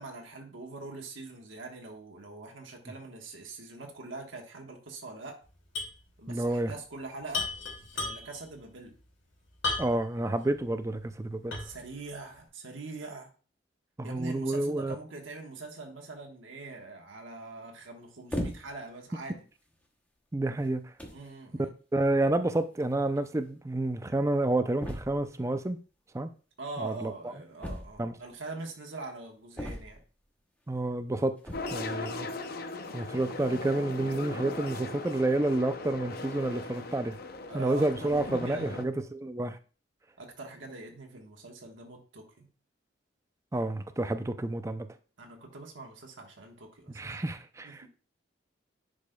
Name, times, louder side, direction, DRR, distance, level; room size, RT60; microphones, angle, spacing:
voice 1, 0.0-5.4 6.2-7.5 7.9-8.9 11.6-13.3 14.0-19.4 21.1-21.7 26.6-30.0 31.9-32.2 37.5-38.9 40.2-42.5 45.2-47.1 47.6-47.9, right 3 dB, 85° right, 1.3 m, -43 dB
sound 1, 5.7-6.0 6.3-6.4 7.3-8.5 9.6-10.2 10.7-10.8 11.5-11.9, left 3 dB, 85° left, 2.9 m, -33 dB
voice 2, 6.3-6.7 9.8-11.6 14.0-15.0 20.3-20.8 21.9-25.8 26.1-26.3 26.8-27.1 28.0-28.1 30.7-31.3 31.7-32.3 32.9-37.2 37.5-39.6 43.5-44.9 46.9-47.9, right 2 dB, 15° right, 0.4 m, -29 dB
sound 2, 18.3-18.9 19.7-19.8 20.6-20.7 21.0-21.3 22.5-22.6 22.8-22.9 23.2-23.3 24.8-25.3 27.6-28.3 29.6-30.2 31.4-31.9, equal, 10° left, 0.8 m, -37 dB
sound 3, 31.5-38.8, left 3 dB, 50° left, 0.6 m, -39 dB
10.0 x 5.1 x 2.3 m
head